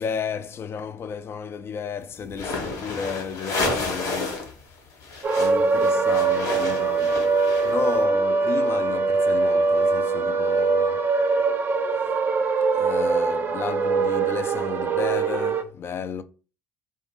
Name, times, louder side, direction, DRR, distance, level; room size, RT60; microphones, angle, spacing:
voice 1, 0.0-4.5 5.4-7.4 7.6-11.1 11.9-12.0 12.7-16.2, left 6 dB, 40° left, 0.3 m, -32 dB
sound 1, 2.3-4.5 4.8-7.9, left 3 dB, 65° left, 1.2 m, -30 dB
sound 2, 5.2-15.6, right 4 dB, 30° right, 0.4 m, -22 dB
2.4 x 2.2 x 3.0 m
supercardioid pair, 80°, 6 cm